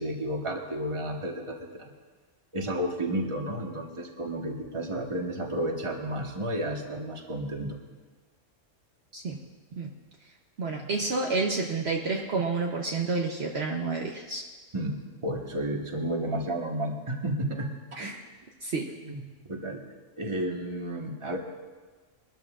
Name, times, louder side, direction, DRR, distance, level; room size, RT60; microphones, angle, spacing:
voice 1, 0.0-1.9 2.5-7.8 14.7-18.1 19.0-19.2 19.5-19.8 20.2-21.4, right 1 dB, 25° right, 1 dB, 1.4 m, -32 dB
voice 2, 10.6-14.4 18.0-18.2 18.6-18.9, right 3 dB, 55° right, 0 dB, 1.1 m, -29 dB
22.0 x 13.0 x 2.5 m, 1.3 s
omnidirectional pair, 1.3 m